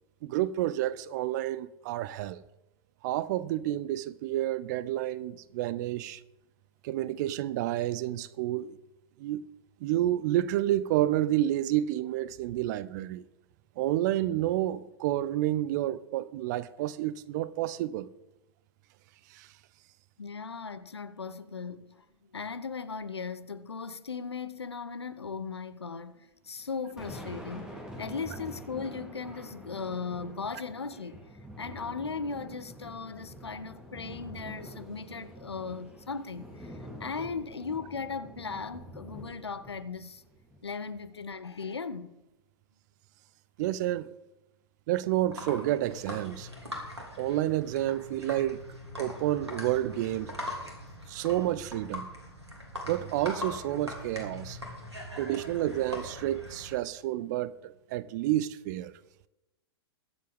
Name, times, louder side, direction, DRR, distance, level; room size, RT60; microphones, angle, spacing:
voice 1, 0.2-2.4 3.0-6.2 6.8-8.8 9.2-9.4 9.8-13.2 13.8-18.1 19.3-19.5 43.6-44.1 44.9-46.5 47.2-48.6 49.0-50.3 51.1-52.1 52.8-54.6 55.2-58.9, right 14 dB, 45° right, 0.6 m, -30 dB
voice 2, 20.2-31.2 31.6-40.2 40.6-42.1, left 5 dB, 80° left, 0.9 m, -38 dB
Thunder, 26.6-41.2, equal, 5° right, 3.3 m, -46 dB
sound 1, 45.1-56.8, left 1 dB, 90° right, 3.0 m, -41 dB
22.0 x 7.5 x 3.6 m
figure-of-eight pair, 100°, 14 cm